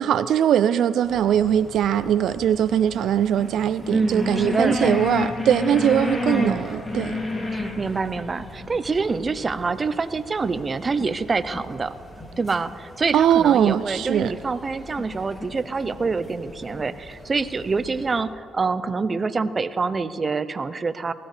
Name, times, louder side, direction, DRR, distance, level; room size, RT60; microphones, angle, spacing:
voice 1, 0.0-7.2 13.1-14.3, right 10 dB, 75° right, 13 dB, 0.3 m, -21 dB
sound 1, 1.0-18.2, left 3 dB, 20° left, 2.8 m, -33 dB
voice 2, 3.9-5.0 6.3-6.7 7.5-11.9 12.4-21.1, right 4 dB, 30° right, 12 dB, 0.6 m, -26 dB
sound 2, 4.1-10.4, right 2 dB, ahead, 4.1 m, -44 dB
19.5 x 15.5 x 3.3 m, 2.5 s
cardioid pair, 90°, 0 cm